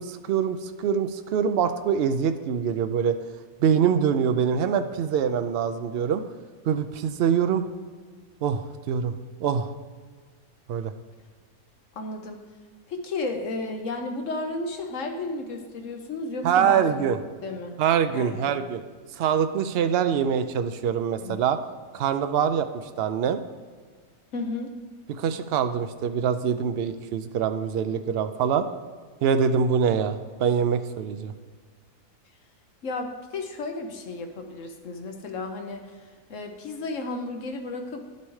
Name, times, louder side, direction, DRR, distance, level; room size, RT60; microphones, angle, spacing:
voice 1, 0.0-3.2 3.6-6.2 6.7-7.6 8.4-9.1 9.4-9.7 10.7-10.9 16.4-17.2 17.8-18.8 19.2-21.6 21.9-22.7 23.0-23.4 25.2-28.7 29.2-31.3, right 7 dB, 70° right, 9 dB, 0.5 m, -24 dB
voice 2, 11.9-12.4 12.9-17.1 17.4-17.8 18.1-18.6 21.2-21.4 24.3-24.7 32.8-35.9 36.3-38.0, left 3 dB, 60° left, 4 dB, 1.2 m, -33 dB
11.0 x 6.9 x 3.2 m, 1.6 s
omnidirectional pair, 1.5 m